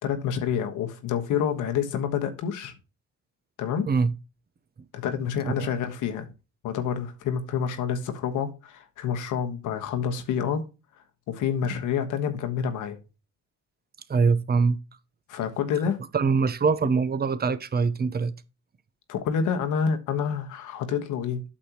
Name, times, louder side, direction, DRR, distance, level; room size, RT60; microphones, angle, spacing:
voice 1, 0.0-2.7 3.6-3.9 4.9-6.3 6.6-10.6 11.3-13.0 15.3-16.0 19.1-21.4, left 7 dB, 90° left, 1.3 m, -28 dB
voice 2, 14.1-14.8 16.1-18.3, right 5 dB, 30° right, 0.8 m, -23 dB
8.6 x 6.5 x 2.9 m
cardioid pair, 90°, 30 cm